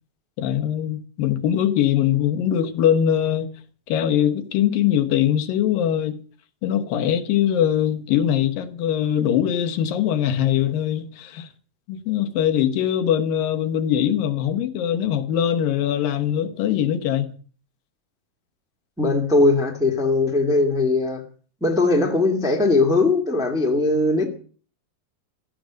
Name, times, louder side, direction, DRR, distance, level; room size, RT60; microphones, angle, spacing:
voice 1, 0.4-3.5 3.9-6.2 6.6-11.5 11.9-17.3, left 10 dB, 75° left, 2.8 m, -22 dB
voice 2, 19.0-21.2 21.6-24.3, left 2 dB, ahead, 1.2 m, -19 dB
15.5 x 13.0 x 6.3 m
omnidirectional pair, 4.1 m